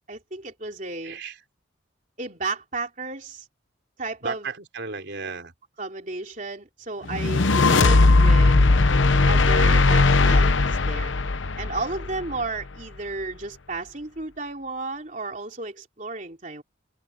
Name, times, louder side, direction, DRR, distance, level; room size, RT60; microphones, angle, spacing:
voice 1, 0.1-1.2 2.2-3.4 4.0-4.5 5.8-8.6 9.3-11.1 11.6-16.6, right 3 dB, 40° right, 3.3 m, -33 dB
voice 2, 1.0-1.3 4.2-5.5 7.7-8.1, right 3 dB, 60° right, 4.0 m, -34 dB
sound 1, 7.1-12.4, left 3 dB, 75° left, 0.9 m, -18 dB
head